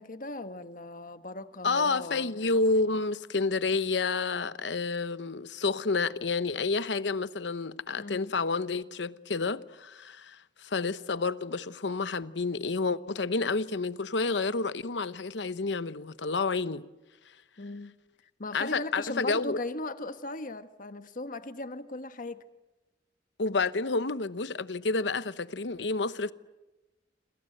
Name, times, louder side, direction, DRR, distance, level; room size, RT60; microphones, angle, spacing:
voice 1, 0.0-2.3 8.0-8.3 17.6-17.9 18.4-22.4, left 2 dB, 50° left, 1.3 m, -38 dB
voice 2, 1.6-16.8 18.5-19.6 23.4-26.3, left 3 dB, 70° left, 0.9 m, -29 dB
28.0 x 27.0 x 7.9 m
head